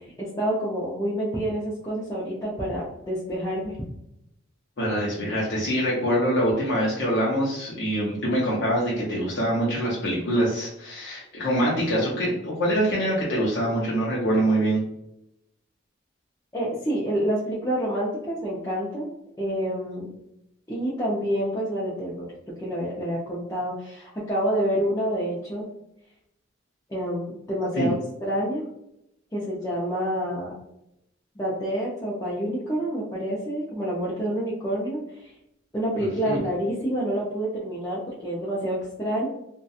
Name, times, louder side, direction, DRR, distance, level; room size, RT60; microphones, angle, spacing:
voice 1, 0.2-3.8 16.5-19.1 19.4-20.1 20.7-22.3 22.6-25.7 26.9-27.9 28.2-28.6 29.3-30.5 31.4-35.3 35.7-39.3, equal, 15° left, -8 dB, 0.4 m, -28 dB
voice 2, 4.8-14.8 27.8-27.9 36.0-36.4, right 1 dB, 60° left, -6 dB, 0.6 m, -24 dB
2.7 x 2.2 x 2.3 m, 0.82 s
head